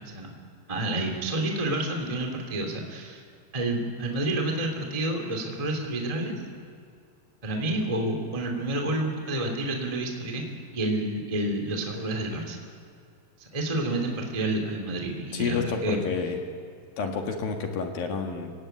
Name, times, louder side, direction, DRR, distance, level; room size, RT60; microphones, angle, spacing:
voice 1, 0.7-3.2 3.5-6.3 7.4-10.5 10.7-12.6 13.5-16.0, right 1 dB, 10° right, 2 dB, 2.1 m, -29 dB
voice 2, 15.3-16.4 17.0-18.5, left 5 dB, 60° left, 3 dB, 3.2 m, -29 dB
28.0 x 17.5 x 9.4 m, 2.3 s
omnidirectional pair, 5.2 m